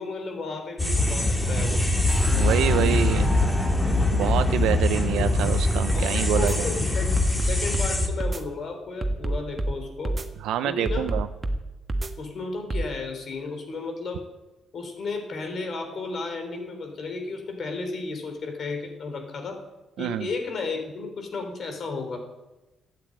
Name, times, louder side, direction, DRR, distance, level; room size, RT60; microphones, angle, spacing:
voice 1, 0.0-1.8 5.9-7.1 7.4-10.2 10.6-11.1 12.2-14.3 14.7-19.6 20.0-22.2, left 3 dB, 55° left, 5 dB, 3.5 m, -33 dB
sound 1, 0.8-8.1, left 2 dB, 15° left, 2.3 m, -23 dB
sound 2, 2.1-5.9, equal, 5° right, 4.3 m, -38 dB
voice 2, 2.3-3.3 4.1-6.7 10.4-11.3 20.0-20.3, right 11 dB, 90° right, 9 dB, 0.6 m, -26 dB
sound 3, 5.6-6.1 6.4-6.6 7.2-7.9 8.2-8.4 9.0-9.7 10.1-10.3 10.9-11.6 11.9-12.1 12.7-12.9, right 1 dB, 25° right, 1.4 m, -27 dB
12.5 x 9.3 x 8.7 m, 1.0 s
cardioid pair, 90°, 0 cm